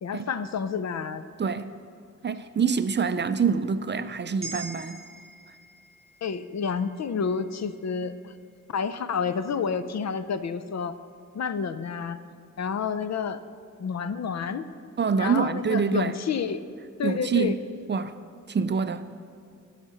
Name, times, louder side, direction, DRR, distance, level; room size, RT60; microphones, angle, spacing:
voice 1, 0.0-1.2 6.2-8.3 8.7-11.0 11.3-12.2 12.6-13.4 13.8-14.7 15.2-16.6 17.0-17.5, left 6 dB, 60° left, 12 dB, 0.5 m, -29 dB
voice 2, 1.4-1.7 2.2-5.0 15.0-16.1 17.0-17.6 17.9-18.2 18.5-19.1, right 6 dB, 35° right, 11 dB, 0.4 m, -26 dB
sound 1, 4.4-8.9 9.3-9.4, right 1 dB, 20° right, 1.9 m, -45 dB
11.5 x 5.8 x 6.9 m, 2.3 s
wide cardioid pair, 150°, 31 cm